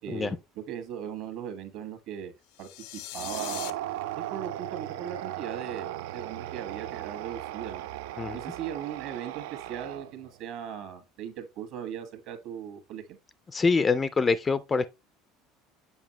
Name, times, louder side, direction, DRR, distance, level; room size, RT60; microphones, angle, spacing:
voice 1, 0.0-2.3 2.6-3.8 4.2-7.9 8.3-13.2, right 9 dB, 60° right, 1.5 m, -39 dB
sound 1, 2.5-3.7, left 15 dB, 75° left, 0.5 m, -39 dB
sound 2, 3.1-10.3, right 14 dB, 85° right, 0.4 m, -37 dB
voice 2, 13.5-14.9, left 4 dB, 20° left, 0.3 m, -25 dB
7.2 x 5.3 x 2.9 m
cardioid pair, 150°, 0 cm